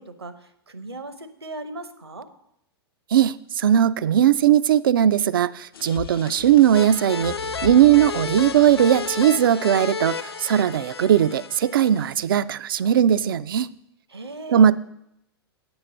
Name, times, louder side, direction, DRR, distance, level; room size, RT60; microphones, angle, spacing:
voice 1, 0.0-2.3 14.1-14.7, right 2 dB, 80° right, 10 dB, 0.9 m, -37 dB
voice 2, 3.1-7.3 7.6-13.7 14.5-14.8, right 10 dB, 60° right, 17 dB, 0.4 m, -18 dB
sound 1, 5.7-10.7, left 8 dB, 65° left, 0.8 m, -40 dB
sound 2, 6.7-12.1, left 5 dB, 80° left, 0.4 m, -32 dB
8.8 x 6.2 x 6.6 m, 0.78 s
figure-of-eight pair, 100°, 13 cm